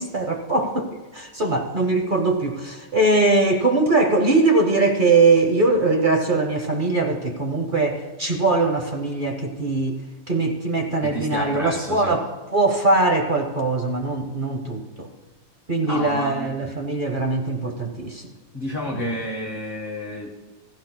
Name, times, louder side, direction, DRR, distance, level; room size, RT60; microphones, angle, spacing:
voice 1, 0.0-10.0 10.3-12.3 12.5-15.1 15.7-18.3 18.9-19.2, right 3 dB, 40° right, 4 dB, 0.8 m, -21 dB
voice 2, 11.0-12.2 15.9-16.5 18.5-20.3, left 1 dB, 35° left, -1 dB, 1.3 m, -30 dB
16.0 x 15.5 x 2.2 m, 1.2 s
omnidirectional pair, 1.8 m